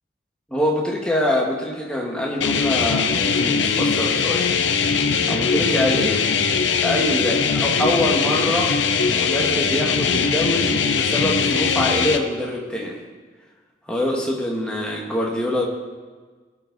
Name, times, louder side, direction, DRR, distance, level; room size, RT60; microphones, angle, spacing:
voice 1, 0.5-4.5 5.3-6.3 6.8-8.8 9.0-13.0 13.9-15.7, left 1 dB, 5° left, -2 dB, 1.5 m, -24 dB
sound 1, 2.4-12.2, left 5 dB, 75° left, 0.7 m, -21 dB
16.5 x 7.2 x 4.0 m, 1.4 s
head